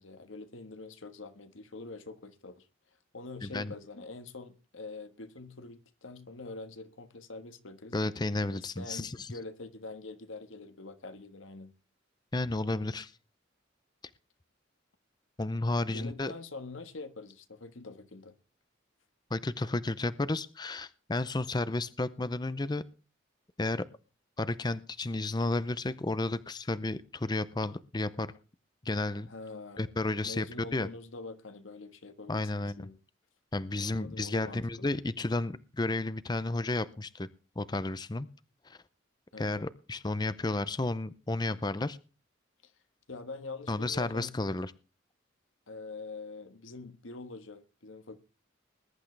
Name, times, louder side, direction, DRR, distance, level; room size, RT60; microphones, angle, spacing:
voice 1, 0.0-2.7 3.1-8.0 8.5-11.7 15.9-18.3 29.3-29.9 30.2-33.0 33.8-34.9 39.3-39.7 42.6-42.7 43.1-44.3 45.7-48.2, left 3 dB, 90° left, 1.4 m, -45 dB
voice 2, 3.4-3.7 7.9-9.3 12.3-13.1 15.4-16.3 19.3-22.8 23.6-23.9 24.4-28.3 28.8-29.3 29.8-30.5 30.7-30.9 32.3-32.9 33.5-37.3 37.6-38.3 38.6-38.8 39.4-42.0 43.7-44.7, left 2 dB, 20° left, 0.6 m, -32 dB
20.5 x 11.0 x 3.3 m
head